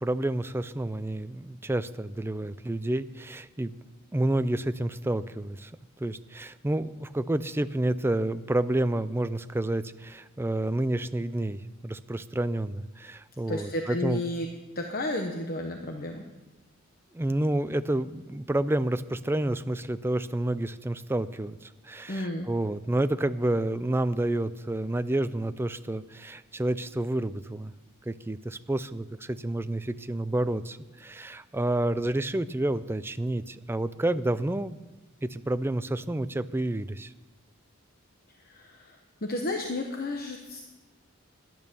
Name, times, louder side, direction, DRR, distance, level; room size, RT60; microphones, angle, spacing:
voice 1, 0.0-3.7 4.1-5.7 6.0-14.2 17.1-27.7 28.1-34.8 35.2-37.1, right 1 dB, 10° right, 13 dB, 0.4 m, -29 dB
voice 2, 13.5-14.5 14.7-16.2 22.1-22.5 38.3-40.6, left 2 dB, 45° left, 3 dB, 1.1 m, -32 dB
12.5 x 10.5 x 6.9 m, 1.1 s
head